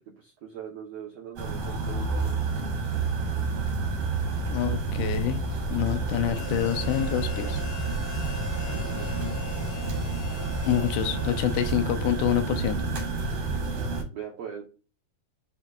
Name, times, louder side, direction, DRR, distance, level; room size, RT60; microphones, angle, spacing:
voice 1, 0.1-2.3 8.6-9.3 14.1-14.6, right 8 dB, 75° right, -2 dB, 1.5 m, -41 dB
sound 1, 1.4-14.0, right 3 dB, 55° right, 3.2 m, -29 dB
voice 2, 4.5-7.6 10.7-12.8, left 11 dB, 90° left, 9 dB, 2.9 m, -27 dB
Harmonica, 6.3-12.1, left 4 dB, 60° left, 2.5 m, -42 dB
8.9 x 4.5 x 2.5 m, 0.34 s
omnidirectional pair, 4.8 m